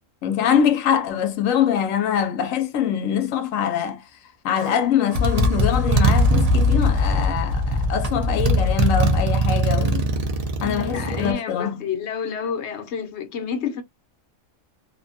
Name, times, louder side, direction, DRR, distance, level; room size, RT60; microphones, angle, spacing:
voice 1, 0.2-4.1 4.4-10.0 10.6-11.8, left 8 dB, 90° left, 1.0 m, -23 dB
Motorcycle, 4.6-4.7 5.1-11.3, equal, 55° right, 0.4 m, -20 dB
voice 2, 10.6-13.8, left 6 dB, 65° left, 0.9 m, -29 dB
2.7 x 2.2 x 2.5 m
omnidirectional pair, 1.3 m